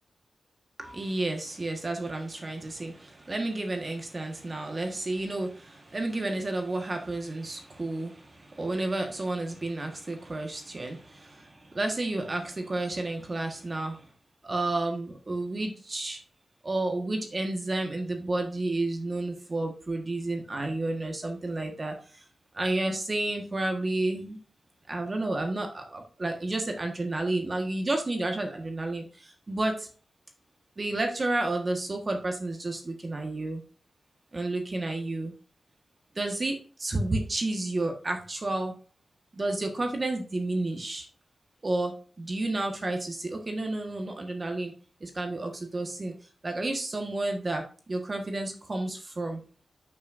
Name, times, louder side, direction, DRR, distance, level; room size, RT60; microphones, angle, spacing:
voice 1, 0.8-14.0 14.4-16.2 16.6-21.9 22.5-24.4 24.9-29.0 29.5-29.9 30.8-33.6 34.3-35.3 36.1-38.7 39.3-41.1 41.6-41.9 42.2-44.7 45.0-46.1 46.4-47.6 47.9-49.4, right 2 dB, 35° right, 3 dB, 1.5 m, -31 dB
11.5 x 6.2 x 2.6 m, 0.40 s
wide cardioid pair, 85°, 0 cm